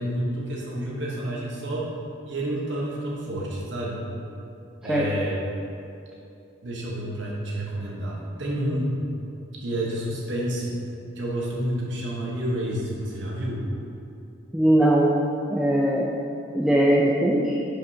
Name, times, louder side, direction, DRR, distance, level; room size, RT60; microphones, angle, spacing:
voice 1, 0.0-1.9 2.2-4.1 4.8-5.4 6.6-9.0 9.6-10.8 11.2-13.6, right 1 dB, 60° right, -4 dB, 1.1 m, -29 dB
voice 2, 14.5-15.1 15.5-16.1 16.5-17.6, right 1 dB, 5° right, -4 dB, 0.4 m, -20 dB
10.5 x 5.2 x 2.8 m, 2.7 s
head